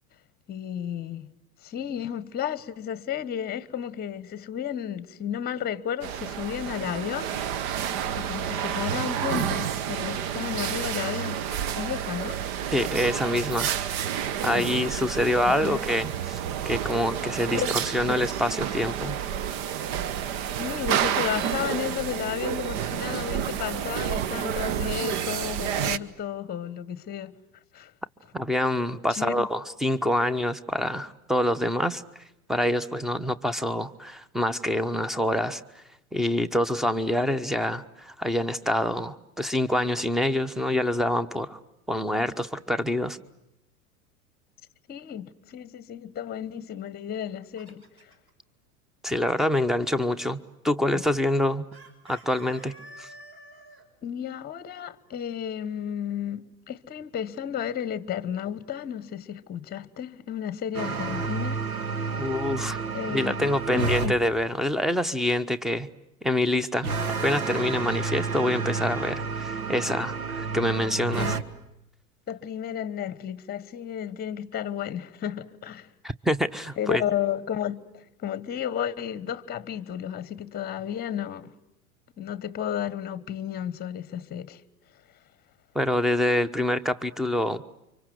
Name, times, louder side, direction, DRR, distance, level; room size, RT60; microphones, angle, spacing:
voice 1, 0.5-1.3 1.6-7.3 8.2-11.4 11.8-12.4 14.5-14.9 15.4-15.8 17.1-17.2 17.5-17.7 18.1-18.2 20.6-27.3 27.7-27.9 29.1-29.5 44.9-48.1 54.0-62.4 62.9-64.1 71.2-71.4 72.3-75.9 76.8-81.5 82.2-84.6, left 9 dB, 20° left, 1.2 m, -33 dB
sound 1, 6.0-26.0, right 9 dB, 45° right, 1.1 m, -30 dB
voice 2, 12.7-13.7 14.4-19.2 28.3-32.0 32.5-35.8 36.1-41.6 41.9-43.2 49.0-51.7 52.1-53.1 62.2-62.8 63.1-65.9 66.2-66.9 67.2-71.3 76.0-77.0 85.7-87.6, left 1 dB, ahead, 1.0 m, -26 dB
Chicken rooster, 47.1-48.3 51.7-53.8, right 1 dB, 30° right, 6.2 m, -48 dB
sound 2, 60.7-64.1 66.8-71.4, right 4 dB, 80° right, 1.7 m, -30 dB
30.0 x 25.0 x 7.9 m
hypercardioid pair, 95°, 43 cm